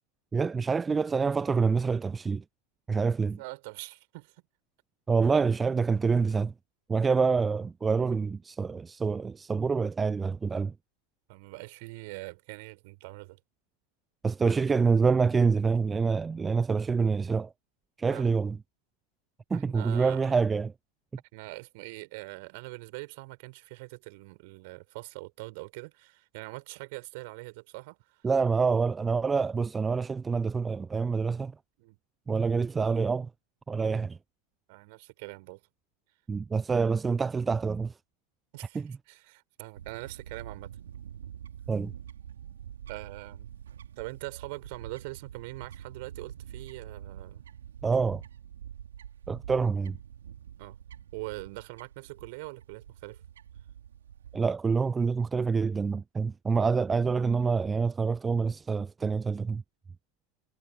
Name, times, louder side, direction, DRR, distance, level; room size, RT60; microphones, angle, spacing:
voice 1, 0.3-2.4 2.9-3.4 5.1-6.5 6.9-10.7 14.2-17.5 18.0-18.6 19.5-20.7 28.2-31.5 32.3-33.3 33.7-34.2 36.3-37.9 38.7-38.9 41.7-41.9 47.8-48.2 49.3-50.0 54.3-59.6, right 5 dB, 15° right, 0.4 m, -26 dB
voice 2, 3.0-4.4 11.3-13.4 18.1-18.3 19.5-20.4 21.3-28.3 31.8-32.0 34.7-35.6 38.5-40.7 42.9-43.5 44.0-47.4 50.6-50.8 51.1-53.2, right 25 dB, 50° right, 4.3 m, -43 dB
Fowl / Bird, 39.8-54.4, right 9 dB, 65° right, 4.5 m, -46 dB
figure-of-eight pair, 90°, 0 cm